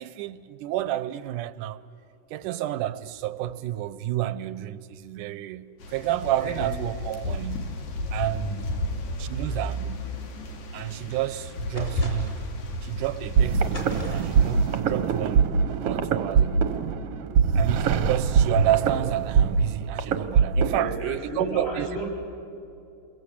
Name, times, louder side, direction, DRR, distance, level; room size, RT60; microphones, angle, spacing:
voice 1, 0.0-1.8 2.3-7.7 8.1-8.5 9.2-10.0 10.7-12.4 12.8-15.5 15.8-16.7 17.6-21.9, right 13 dB, 85° right, 2.3 m, -30 dB
sound 1, 5.8-14.8, left 1 dB, 75° left, 3.5 m, -33 dB
voice 2, 8.2-8.6 9.2-9.3 20.7-22.1, right 1 dB, 40° left, 7.1 m, -33 dB
sound 2, 11.8-12.6 13.7-14.5, equal, 10° left, 3.4 m, -40 dB
sound 3, 13.4-20.9, right 6 dB, 60° right, 1.8 m, -23 dB
29.0 x 22.0 x 8.4 m
omnidirectional pair, 3.5 m